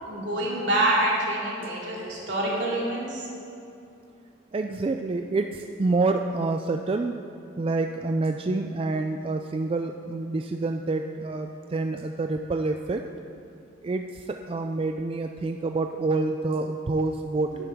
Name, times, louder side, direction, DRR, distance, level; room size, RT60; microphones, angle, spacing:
voice 1, 0.0-3.3 17.5-17.6, right 1 dB, 70° right, -5 dB, 2.8 m, -26 dB
voice 2, 4.5-7.2 7.6-13.0 13.8-17.6, right 3 dB, 30° right, 5 dB, 0.3 m, -27 dB
11.5 x 10.5 x 3.6 m, 2.7 s
head